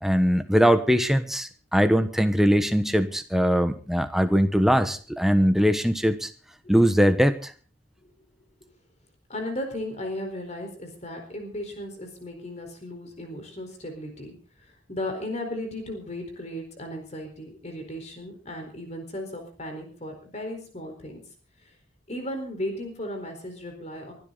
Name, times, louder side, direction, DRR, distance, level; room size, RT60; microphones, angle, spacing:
voice 1, 0.0-6.3 6.7-7.5, equal, ahead, 8 dB, 1.2 m, -21 dB
voice 2, 9.3-14.3 14.9-21.2 22.1-24.1, left 1 dB, 35° left, 4 dB, 4.3 m, -35 dB
23.5 x 12.5 x 4.0 m, 0.39 s
head